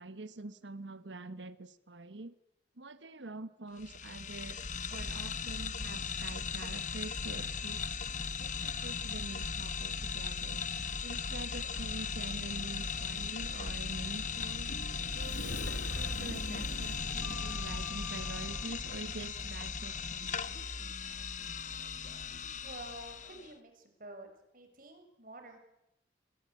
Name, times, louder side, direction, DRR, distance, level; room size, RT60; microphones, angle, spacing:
voice 1, 0.0-2.3 2.8-4.6 4.9-7.9 8.4-10.6 11.0-14.7 15.1-20.6, right 2 dB, 85° right, 13 dB, 1.4 m, -45 dB
sound 1, 3.8-23.5, left 5 dB, 40° left, 1.1 m, -38 dB
Male speech man speaking, 11.6-23.5, left 2 dB, 60° left, 3.5 m, -59 dB
Sliding door, 14.0-18.8, left 1 dB, 80° left, 2.6 m, -42 dB
voice 2, 22.6-25.6, right 1 dB, 50° right, 5 dB, 6.4 m, -49 dB
30.0 x 22.0 x 8.6 m, 0.89 s
head